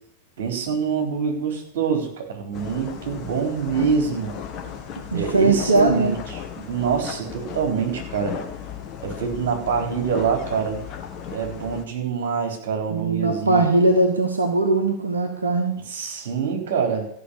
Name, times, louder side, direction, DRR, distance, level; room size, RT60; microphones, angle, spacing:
voice 1, 0.4-4.3 5.1-6.2 6.6-8.4 9.0-10.8 11.3-13.6 15.9-17.1, right 6 dB, 55° right, 2 dB, 3.9 m, -25 dB
sound 1, 2.5-11.8, left 8 dB, 35° left, 1.8 m, -36 dB
voice 2, 5.1-6.2 12.9-15.7, right 2 dB, 75° right, 4 dB, 1.3 m, -20 dB
14.0 x 5.9 x 8.3 m, 0.70 s
figure-of-eight pair, 90°, 0 cm